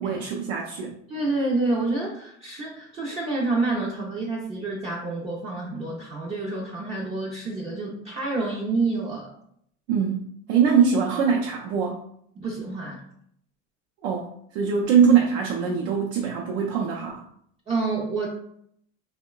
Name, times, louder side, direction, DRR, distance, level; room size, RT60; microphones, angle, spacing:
voice 1, 0.0-1.0 9.9-12.0 14.0-14.3 14.5-17.2, right 7 dB, 85° right, -1 dB, 0.5 m, -22 dB
voice 2, 1.1-9.3 12.4-13.0 17.7-18.3, right 3 dB, 20° right, -4 dB, 0.4 m, -28 dB
2.9 x 2.1 x 2.2 m, 0.69 s
supercardioid pair, 110°, 35 cm